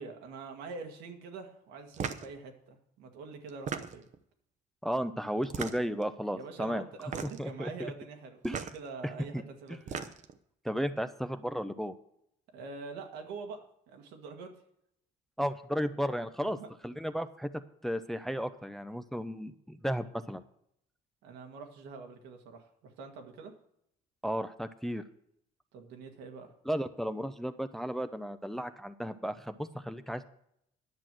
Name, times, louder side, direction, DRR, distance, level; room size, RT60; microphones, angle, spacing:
voice 1, 0.0-4.0 6.3-8.4 8.7-10.0 12.5-13.6 13.9-14.5 16.4-16.7 21.2-23.5 25.7-26.5, right 4 dB, 90° right, 3 dB, 1.8 m, -45 dB
sound 1, 1.9-2.3 3.5-4.2 5.4-6.0 7.0-7.5 8.4-8.8 9.7-10.4, right 6 dB, 45° right, 0.8 m, -37 dB
voice 2, 4.8-6.8 7.4-7.9 8.4-8.7 9.3-9.4 10.6-11.9 15.4-16.6 16.8-17.5 17.8-20.4 24.2-25.0 26.7-30.2, equal, ahead, 10 dB, 0.5 m, -34 dB
10.5 x 6.2 x 7.5 m, 0.74 s
cardioid pair, 110°, 17 cm